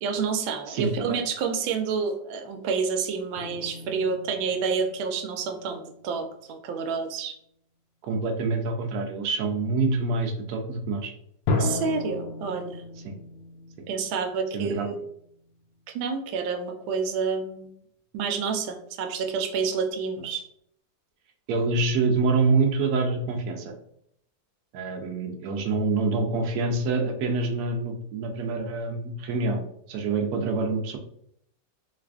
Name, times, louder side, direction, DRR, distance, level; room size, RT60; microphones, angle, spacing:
voice 1, 0.0-7.3 11.6-12.8 13.9-15.0 15.9-17.7 18.1-20.4, right 5 dB, 90° right, 6 dB, 1.3 m, -29 dB
voice 2, 0.7-1.2 8.0-11.1 13.0-13.1 14.5-14.9 20.2-20.3 21.5-23.7 24.7-31.0, right 3 dB, 70° right, 3 dB, 0.9 m, -26 dB
sound 1, 3.3-6.3 6.9-7.2 11.5-15.8, left 2 dB, 75° left, 1.2 m, -34 dB
3.2 x 2.4 x 3.4 m, 0.72 s
omnidirectional pair, 2.1 m